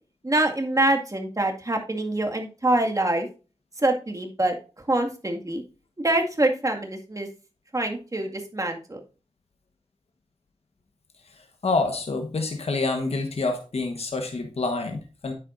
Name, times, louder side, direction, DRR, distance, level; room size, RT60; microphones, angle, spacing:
voice 1, 0.2-3.3 3.8-4.6 4.9-5.6 6.0-7.3 7.7-9.0, right 1 dB, 30° right, 3 dB, 2.0 m, -25 dB
voice 2, 11.6-15.3, left 3 dB, 80° left, 4 dB, 1.2 m, -27 dB
9.6 x 7.8 x 2.6 m, 0.34 s
wide cardioid pair, 55°, 10 cm